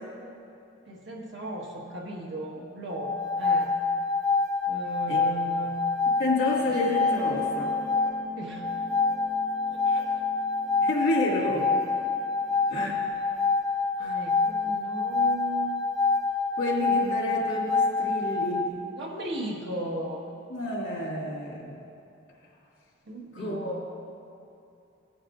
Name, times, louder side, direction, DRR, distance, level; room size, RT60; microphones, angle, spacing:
voice 1, 0.9-3.7 4.7-5.8 8.3-8.7 9.7-10.2 14.0-15.9 19.0-20.2 23.1-23.9, right 2 dB, 70° right, -2 dB, 1.5 m, -37 dB
sound 1, 2.9-18.7, left 4 dB, 15° left, 1.7 m, -27 dB
voice 2, 6.2-7.8 9.9-10.0 10.8-11.7 12.7-13.1 14.0-14.2 16.6-18.7 20.5-21.8 23.3-23.8, left 1 dB, 70° left, -6 dB, 2.5 m, -29 dB
Guitar, 6.7-13.1, equal, 55° right, 1.5 m, -43 dB
18.0 x 8.6 x 2.5 m, 2.7 s
head